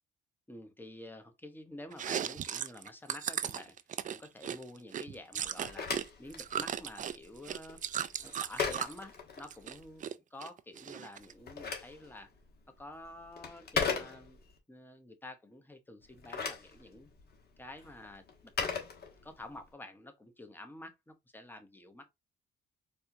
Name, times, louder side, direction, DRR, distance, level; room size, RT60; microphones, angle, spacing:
voice 1, 0.5-3.8 4.1-5.9 6.2-7.8 8.2-12.3 12.8-17.1 17.6-18.7 19.2-22.1, left 1 dB, 10° left, 0.8 m, -49 dB
Chewing mastication, 1.9-6.0 6.3-9.0 9.4-10.1 10.4-11.3, right 9 dB, 40° right, 0.4 m, -37 dB
Telephone, 5.4-9.9 11.2-14.6 16.0-19.6, left 5 dB, 50° left, 1.2 m, -39 dB
4.3 x 2.4 x 2.6 m
cardioid pair, 90°, 20 cm